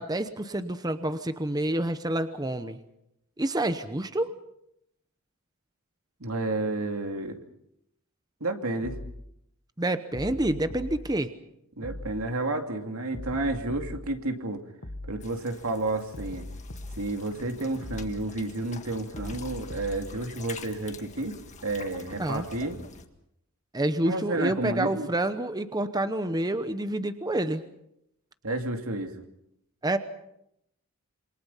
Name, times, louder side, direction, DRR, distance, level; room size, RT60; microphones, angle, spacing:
voice 1, 0.0-2.8 3.4-4.3 9.8-11.3 22.2-22.5 23.7-27.6 29.8-30.0, right 1 dB, 20° right, 10 dB, 0.9 m, -28 dB
voice 2, 6.2-7.4 8.4-9.0 11.8-14.6 15.0-16.5 17.0-21.4 21.6-22.8 24.0-25.1 28.4-29.1, right 2 dB, 80° right, 5 dB, 2.6 m, -31 dB
sound 1, 8.8-9.2 10.1-11.0 11.8-12.2 13.1-14.0 14.8-15.2 16.1-17.0 17.8-18.2 19.1-20.0, left 1 dB, 60° left, 1.6 m, -39 dB
sound 2, 15.2-23.1, left 4 dB, 35° left, 1.9 m, -47 dB
27.5 x 24.5 x 5.7 m, 0.79 s
head